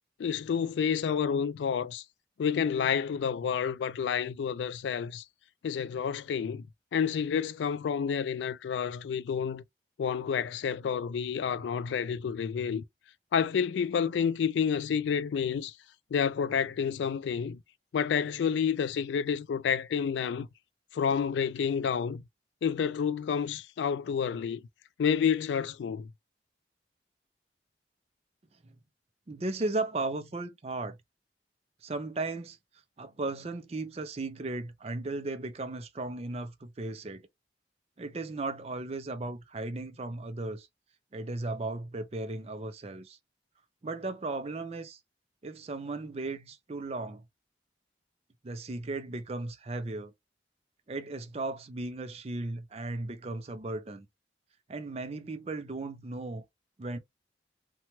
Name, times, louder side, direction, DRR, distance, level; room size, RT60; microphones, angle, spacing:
voice 1, 0.2-2.0 2.4-5.2 5.6-6.7 6.9-9.6 10.0-12.8 13.3-15.7 16.1-17.6 17.9-20.5 20.9-22.2 22.6-24.6 25.0-26.1, left 7 dB, 75° left, 0.3 m, -29 dB
voice 2, 29.3-31.0 31.8-32.6 33.0-37.2 38.0-40.7 41.1-43.2 43.8-45.0 45.4-47.2 48.4-50.1 50.9-54.1 54.7-56.5 56.8-57.0, right 2 dB, 35° right, 0.4 m, -36 dB
3.0 x 2.2 x 2.8 m
head